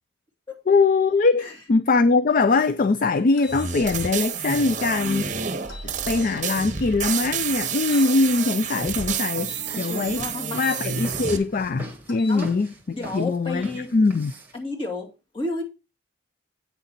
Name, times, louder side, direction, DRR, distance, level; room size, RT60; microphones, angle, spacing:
voice 1, 0.7-5.4 6.1-10.3 10.5-12.7 13.1-14.3, left 3 dB, 45° left, 0.4 m, -22 dB
sound 1, 3.4-3.6 5.7-5.9 7.9-8.1 9.4-10.8 12.0-12.4, left 5 dB, 70° left, 1.9 m, -44 dB
sound 2, 3.5-11.4, right 7 dB, 40° right, 0.9 m, -29 dB
sound 3, 9.3-14.6, right 1 dB, 10° right, 1.8 m, -39 dB
voice 2, 10.1-10.7 12.3-12.5 12.9-13.9 14.5-15.1 15.3-15.6, left 2 dB, 25° left, 2.4 m, -31 dB
9.0 x 6.6 x 4.4 m
head